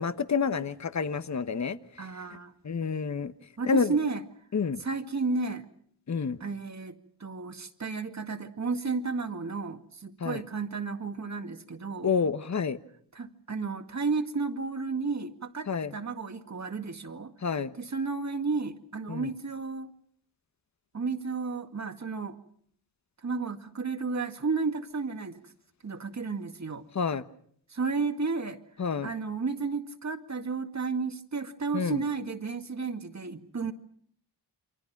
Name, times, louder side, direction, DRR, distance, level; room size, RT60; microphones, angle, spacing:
voice 1, 0.0-1.8 2.6-3.3 3.7-3.9 4.5-4.8 6.1-6.4 10.2-10.4 12.0-12.8 15.7-15.9 17.4-17.7 19.1-19.3 26.9-27.2 28.8-29.1 31.7-32.0, left 5 dB, 40° left, 13 dB, 1.2 m, -28 dB
voice 2, 2.0-2.5 3.6-4.2 4.8-5.7 6.4-12.2 13.1-17.3 17.7-19.9 20.9-22.4 23.2-25.4 25.8-26.9 27.7-28.6 29.0-33.7, right 4 dB, 40° right, 7 dB, 2.1 m, -32 dB
28.0 x 24.0 x 6.0 m, 0.64 s
cardioid pair, 70°, 42 cm